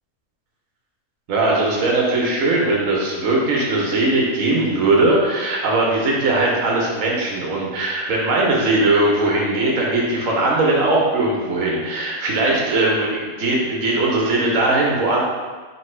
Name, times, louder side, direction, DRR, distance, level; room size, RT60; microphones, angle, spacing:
voice 1, 1.3-15.2, right 2 dB, 80° right, -3 dB, 1.3 m, -19 dB
4.6 x 3.0 x 3.3 m, 1.4 s
omnidirectional pair, 1.4 m